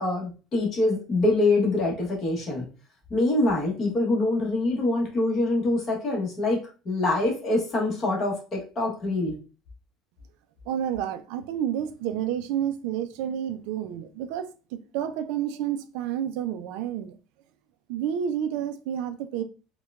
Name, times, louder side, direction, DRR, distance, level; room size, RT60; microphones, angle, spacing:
voice 1, 0.0-2.6 3.1-9.3, left 2 dB, 30° left, 1.0 m, -25 dB
voice 2, 10.7-17.2 17.9-19.4, right 9 dB, 75° right, 0.3 m, -30 dB
4.5 x 2.2 x 2.3 m
cardioid pair, 180°, 0 cm